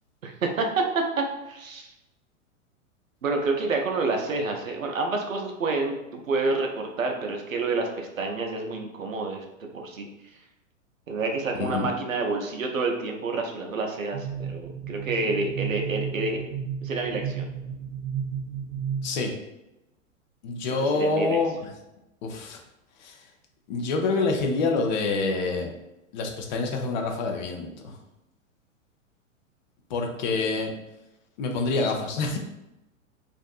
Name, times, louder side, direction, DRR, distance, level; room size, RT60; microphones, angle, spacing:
voice 1, 0.2-1.9 3.2-9.4 9.7-10.1 11.1-16.4 16.8-17.5 20.9-21.4 30.4-30.5, right 3 dB, 80° right, 2 dB, 0.6 m, -28 dB
voice 2, 11.6-11.9 19.0-19.3 20.4-21.7 22.2-22.6 23.0-23.2 23.7-25.7 26.1-27.9 29.9-30.7 31.4-32.4, left 3 dB, 35° left, 3 dB, 0.5 m, -26 dB
sound 1, 14.1-19.1, right 7 dB, 25° right, 0.4 m, -33 dB
2.5 x 2.5 x 2.3 m, 0.91 s
figure-of-eight pair, 105°, 39 cm